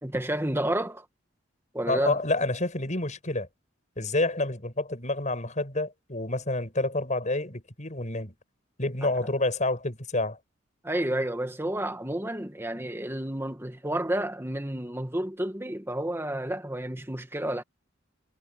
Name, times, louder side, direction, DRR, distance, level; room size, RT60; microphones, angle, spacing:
voice 1, 0.0-1.1 1.7-2.2 9.0-9.1 10.8-17.6, right 1 dB, 15° right, 1.9 m, -30 dB
voice 2, 1.9-3.5 4.0-8.3 8.8-10.4, left 2 dB, 40° left, 6.5 m, -28 dB
head